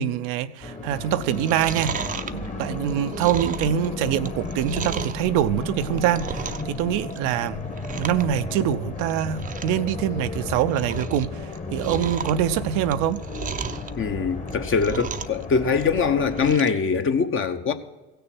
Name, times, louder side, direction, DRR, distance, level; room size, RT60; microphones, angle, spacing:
voice 1, 0.0-7.6 8.0-13.2, right 10 dB, 65° right, 0.6 m, -25 dB
sound 1, 0.6-16.6, left 3 dB, 20° left, 1.3 m, -34 dB
Chewing mastication, 1.2-5.2 5.7-6.8 7.0-7.4 7.7-8.2 8.5-8.6 9.1-9.2 9.4-9.8 10.2-11.2 11.5-13.9 14.4-15.4 15.7-16.8 17.2-17.3, right 6 dB, 25° right, 0.6 m, -34 dB
voice 2, 14.0-17.7, left 5 dB, 40° left, 1.1 m, -23 dB
16.0 x 6.8 x 6.1 m
hypercardioid pair, 75°, 34 cm